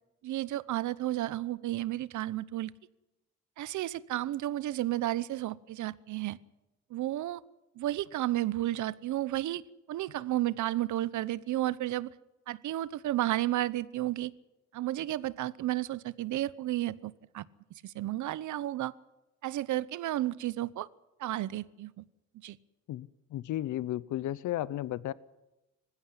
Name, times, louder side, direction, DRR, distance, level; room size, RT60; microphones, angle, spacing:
voice 1, 0.2-2.7 3.6-6.4 6.9-7.4 7.8-9.6 9.9-12.1 12.5-14.3 14.7-17.4 17.8-18.9 19.4-20.9 21.2-22.0 22.4-22.6, right 14 dB, 75° right, 19 dB, 0.9 m, -32 dB
voice 2, 22.9-25.1, left 13 dB, 75° left, 19 dB, 0.7 m, -34 dB
20.0 x 16.0 x 9.9 m, 0.98 s
cardioid pair, 90°, 30 cm